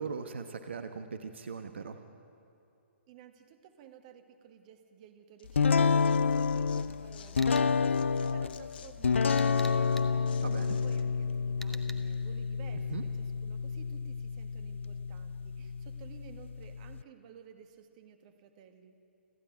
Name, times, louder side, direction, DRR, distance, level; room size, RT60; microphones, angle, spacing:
voice 1, 0.0-2.0 10.4-10.8 12.9-13.0, right 5 dB, 65° right, 7 dB, 1.3 m, -39 dB
voice 2, 3.1-19.0, right 8 dB, 35° right, 7 dB, 1.8 m, -54 dB
Tearing, 5.4-7.6 7.9-11.0, left 8 dB, 50° left, 1.2 m, -54 dB
sound 1, 5.5-17.0, left 5 dB, 70° left, 0.4 m, -29 dB
sound 2, 7.4-7.7 9.4-10.1 11.6-11.9, left 1 dB, 5° left, 1.1 m, -45 dB
29.0 x 11.5 x 9.2 m, 2.7 s
figure-of-eight pair, 130°, 7 cm